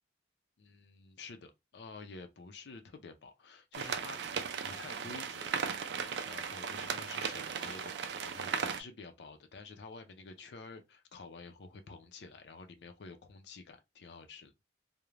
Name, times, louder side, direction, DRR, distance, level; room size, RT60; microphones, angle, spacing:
voice 1, 0.6-14.5, left 4 dB, 65° left, 0.4 m, -50 dB
sound 1, 3.7-8.8, right 6 dB, 70° right, 0.3 m, -37 dB
2.4 x 2.0 x 3.0 m
head